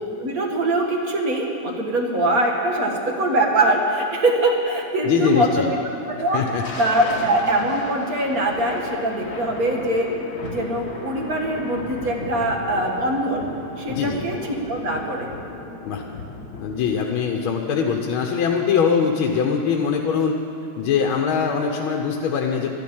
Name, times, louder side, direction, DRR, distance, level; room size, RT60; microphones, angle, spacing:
voice 1, 0.2-5.8 6.1-6.5 6.8-10.1 10.4-13.5 13.8-15.3, right 1 dB, 45° right, 0 dB, 2.1 m, -22 dB
voice 2, 5.0-5.7 6.3-6.6 13.9-14.2 15.8-16.0 16.6-20.4 20.8-22.7, left 6 dB, 80° left, 1 dB, 1.7 m, -22 dB
Thunder, 6.2-17.0, left 3 dB, 50° left, 2.0 m, -35 dB
12.0 x 12.0 x 8.8 m, 2.7 s
omnidirectional pair, 2.2 m